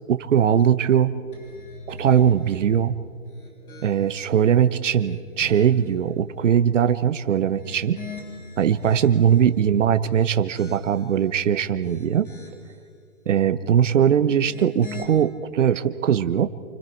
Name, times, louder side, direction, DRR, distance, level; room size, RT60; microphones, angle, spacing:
voice 1, 0.1-1.1 1.9-2.9 3.8-8.0 8.6-12.3 13.3-16.5, right 8 dB, 55° right, 11 dB, 1.1 m, -20 dB
sound 1, 1.3-2.6 3.2-4.3 4.8-5.9 7.4-9.5 10.0-11.2 11.7-12.8 14.2-15.0, left 3 dB, 85° left, 7.0 m, -41 dB
29.0 x 26.0 x 4.6 m, 2.3 s
hypercardioid pair, 150°, 43 cm